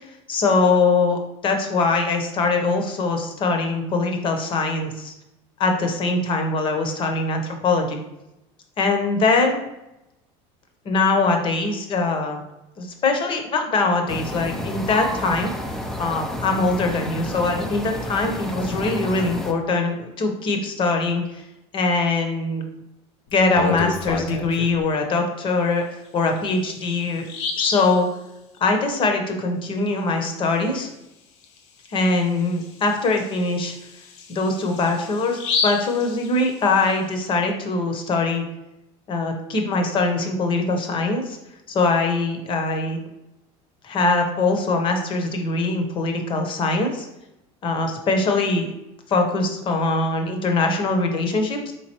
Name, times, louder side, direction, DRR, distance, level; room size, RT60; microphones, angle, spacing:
voice 1, 0.3-5.1 5.6-8.0 8.8-9.6 10.8-12.4 12.8-15.5 16.0-21.4 21.7-22.7 23.3-27.2 27.6-28.1 28.6-30.9 31.9-33.7 34.3-38.4 39.1-41.4 41.7-43.0 43.8-47.1 47.6-48.7 49.1-51.7, left 3 dB, 35° left, 4 dB, 0.9 m, -22 dB
sound 1, 14.1-19.5, equal, ahead, 0.4 m, -30 dB
Bird vocalization bird call bird song, 23.3-24.8 26.3-26.4 26.8-26.9 27.2-28.0 31.4-31.6 32.0-32.1 32.6-36.8, left 4 dB, 90° left, 0.7 m, -29 dB
4.5 x 3.6 x 3.0 m, 0.90 s
supercardioid pair, 125°, 14 cm